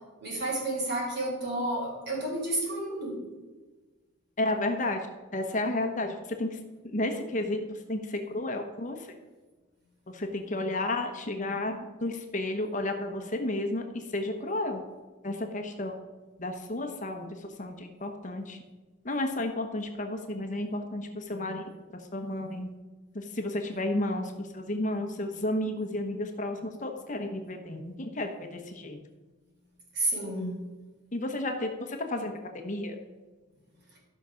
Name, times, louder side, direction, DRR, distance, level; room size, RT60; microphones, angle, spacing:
voice 1, 0.2-3.2 29.9-30.6, right 1 dB, 50° right, -2 dB, 4.0 m, -31 dB
voice 2, 4.4-5.0 5.3-6.5 6.9-7.6 7.9-9.0 10.1-13.8 14.1-14.8 15.2-15.9 16.4-17.3 17.6-18.6 19.0-21.6 22.1-22.7 23.1-29.0 31.1-33.0, left 1 dB, 35° left, 4 dB, 1.1 m, -32 dB
13.5 x 5.8 x 6.3 m, 1.3 s
head